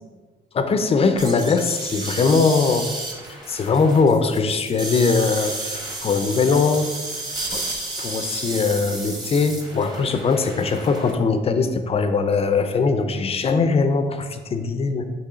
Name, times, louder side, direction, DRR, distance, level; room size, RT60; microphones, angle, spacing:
voice 1, 0.5-2.9 3.5-6.9 7.5-7.6 8.0-15.1, left 4 dB, 35° left, 8 dB, 0.5 m, -21 dB
sound 1, 1.2-11.1, right 2 dB, 20° right, 1.1 m, -32 dB
6.7 x 3.1 x 5.0 m, 1.3 s
cardioid pair, 155°, 18 cm